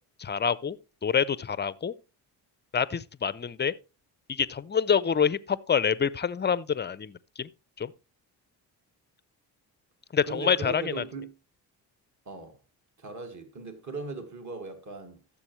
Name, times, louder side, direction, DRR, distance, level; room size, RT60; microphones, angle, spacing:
voice 1, 0.2-0.8 1.0-1.9 2.7-3.7 4.3-7.5 7.8-7.9 10.1-11.0, left 7 dB, 20° left, 0.5 m, -27 dB
voice 2, 10.3-11.3 12.3-12.6 13.0-15.2, right 3 dB, 35° right, 2.0 m, -38 dB
14.0 x 7.1 x 3.1 m
hypercardioid pair, 50°, 48 cm